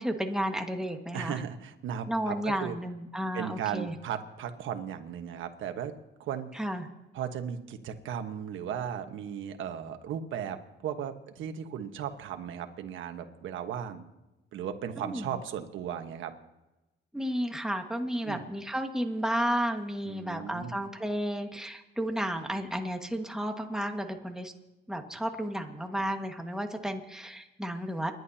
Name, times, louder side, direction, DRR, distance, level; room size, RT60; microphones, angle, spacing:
voice 1, 0.0-1.4 2.1-3.9 6.5-6.9 15.0-15.4 17.1-24.5 24.9-28.1, equal, 5° right, 3 dB, 1.7 m, -32 dB
voice 2, 1.1-2.7 3.3-5.9 6.2-6.6 7.1-14.1 14.5-16.3 18.2-18.4 20.0-20.7, right 8 dB, 80° right, 7 dB, 1.3 m, -36 dB
29.5 x 11.0 x 2.9 m, 1.0 s
cardioid pair, 90°, 20 cm